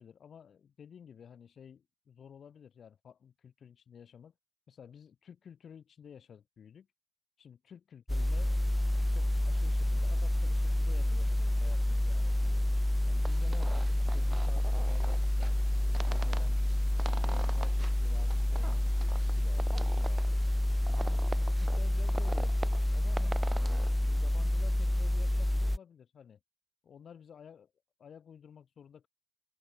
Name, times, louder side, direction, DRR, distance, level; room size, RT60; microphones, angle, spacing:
voice 1, 0.0-4.3 4.7-6.9 7.4-8.6 9.1-12.7 13.1-16.6 17.0-20.4 20.9-23.5 24.0-26.4 26.8-27.7 28.0-29.1, left 7 dB, 55° left, 7.7 m, -53 dB
sound 1, 8.1-25.8, left 1 dB, 5° left, 1.0 m, -28 dB
sound 2, 13.2-23.9, right 3 dB, 25° right, 1.5 m, -45 dB
open air
cardioid pair, 90°, 0 cm